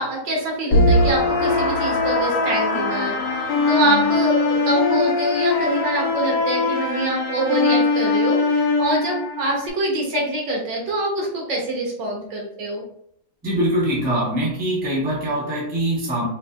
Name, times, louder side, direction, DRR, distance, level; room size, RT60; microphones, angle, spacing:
voice 1, 0.0-12.8, right 1 dB, 70° right, -1 dB, 1.6 m, -25 dB
sound 1, 0.7-9.7, left 3 dB, 70° left, 1.3 m, -21 dB
voice 2, 13.4-16.3, right 1 dB, 5° right, -7 dB, 0.7 m, -23 dB
4.4 x 2.7 x 2.4 m, 0.70 s
omnidirectional pair, 2.1 m